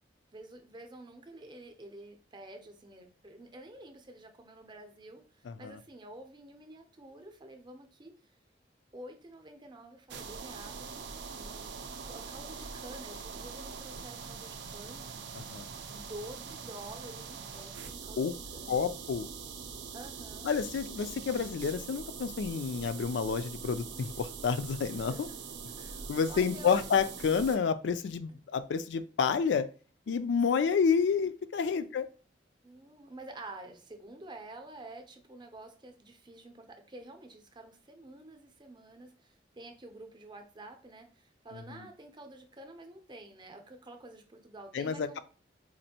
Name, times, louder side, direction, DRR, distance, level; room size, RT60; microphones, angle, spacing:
voice 1, 0.3-8.1 8.9-10.9 11.3-15.2 15.9-18.8 19.9-20.5 24.9-25.4 25.8-26.8 31.7-31.9 32.6-45.2, right 1 dB, 25° right, 5 dB, 0.6 m, -49 dB
voice 2, 5.5-5.8 15.3-15.6 18.2-18.3 18.7-19.3 20.4-25.3 26.1-29.7 30.1-32.1 44.7-45.2, left 6 dB, 80° left, 12 dB, 0.4 m, -29 dB
sound 1, 10.1-27.6, right 5 dB, 75° right, 0.5 m, -43 dB
4.2 x 2.5 x 2.8 m, 0.39 s
head